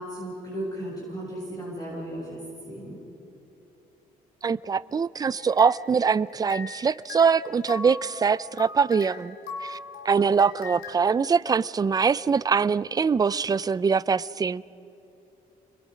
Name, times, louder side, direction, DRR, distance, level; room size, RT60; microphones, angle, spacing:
voice 1, 0.0-3.0, right 1 dB, 25° left, 7.2 m, -35 dB
voice 2, 4.4-9.3 9.6-9.8 10.0-14.6, right 5 dB, 25° right, 0.5 m, -23 dB
sound 1, 5.4-6.8 7.1-11.4, left 4 dB, 85° left, 3.6 m, -40 dB
30.0 x 22.0 x 5.1 m
cardioid pair, 120°, 15 cm